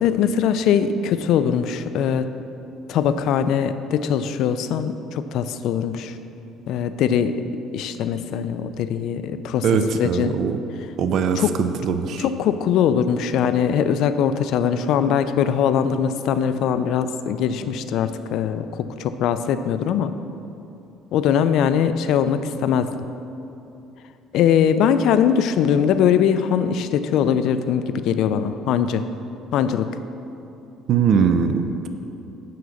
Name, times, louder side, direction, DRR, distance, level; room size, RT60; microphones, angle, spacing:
voice 1, 0.0-2.3 2.9-6.1 6.7-7.4 7.7-9.7 9.9-10.4 11.4-11.6 12.2-20.1 21.1-23.0 24.3-29.1 29.5-29.9, left 8 dB, 60° left, 11 dB, 0.4 m, -21 dB
voice 2, 9.6-10.6 11.0-12.2 30.9-31.9, right 6 dB, 50° right, 8 dB, 0.4 m, -21 dB
9.3 x 3.8 x 7.0 m, 2.9 s
cardioid pair, 165°, 0 cm